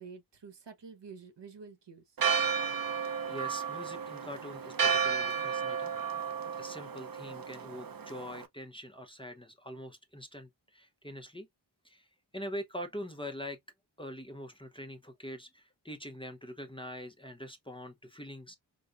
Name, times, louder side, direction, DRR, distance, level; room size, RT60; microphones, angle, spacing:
voice 1, 0.0-2.0, right 5 dB, 65° right, 1.1 m, -49 dB
Church bell, 2.2-8.5, right 6 dB, 50° right, 0.6 m, -33 dB
voice 2, 2.8-5.9 6.6-11.5 11.8-12.0 12.3-13.6 14.0-18.6, equal, 10° left, 0.7 m, -44 dB
5.1 x 2.2 x 2.4 m
wide cardioid pair, 75°, 45 cm